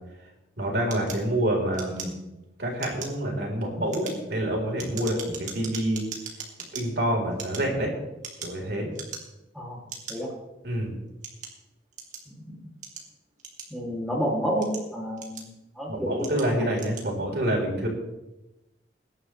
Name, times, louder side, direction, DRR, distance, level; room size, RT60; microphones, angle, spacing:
voice 1, 0.6-2.1 2.6-6.0 6.7-7.9 8.4-8.9 10.6-10.9 15.9-17.9, right 1 dB, 65° right, 0 dB, 4.1 m, -27 dB
sound 1, 0.9-2.4 2.8-3.2 3.8-6.8 7.3-8.6 8.9-9.5 9.9-10.2 10.8-12.3 12.8-14.0 14.5-15.7 16.2-16.5 16.7-17.1, right 5 dB, 40° right, 2.4 m, -40 dB
voice 2, 12.3-12.7 13.7-16.6, equal, ahead, -4 dB, 2.5 m, -30 dB
22.0 x 11.0 x 3.2 m, 0.98 s
head